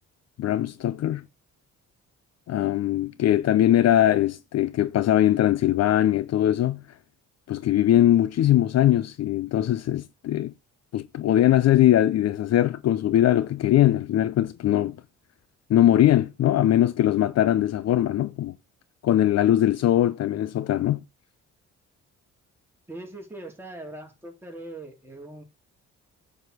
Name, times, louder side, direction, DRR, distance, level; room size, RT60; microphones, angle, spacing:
voice 1, 0.4-1.2 2.5-6.8 7.5-10.5 10.9-15.0 15.7-18.5 19.0-21.0, left 12 dB, 60° left, 0.5 m, -21 dB
voice 2, 22.9-25.4, right 2 dB, 5° right, 3.6 m, -41 dB
9.8 x 5.0 x 6.2 m
cardioid pair, 90°, 30 cm